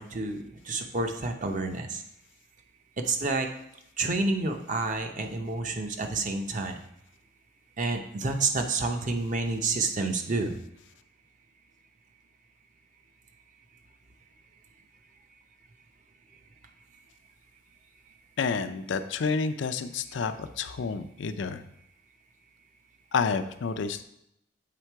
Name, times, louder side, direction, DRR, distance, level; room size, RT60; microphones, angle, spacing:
voice 1, 0.0-2.0 3.0-3.5 4.0-6.8 7.8-10.5, right 3 dB, 40° right, 5 dB, 0.7 m, -29 dB
voice 2, 18.4-21.6 23.1-24.0, left 5 dB, 70° left, 9 dB, 0.4 m, -29 dB
7.7 x 3.7 x 4.6 m, 0.78 s
head